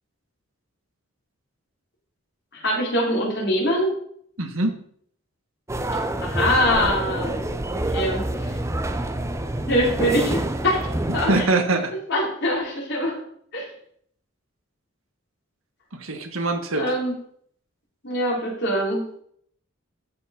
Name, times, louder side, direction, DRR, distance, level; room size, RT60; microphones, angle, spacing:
voice 1, 2.5-3.9 6.2-7.5 7.9-8.2 9.7-10.8 11.1-11.5 12.1-13.2 13.5-13.7 16.8-17.1 18.0-19.0, equal, 55° left, -4 dB, 4.2 m, -23 dB
voice 2, 4.4-4.8 11.3-12.0 15.9-16.9, right 2 dB, 85° right, 5 dB, 1.5 m, -23 dB
sound 1, 5.7-11.5, right 1 dB, 15° right, 0.5 m, -27 dB
13.0 x 4.9 x 5.3 m, 0.64 s
head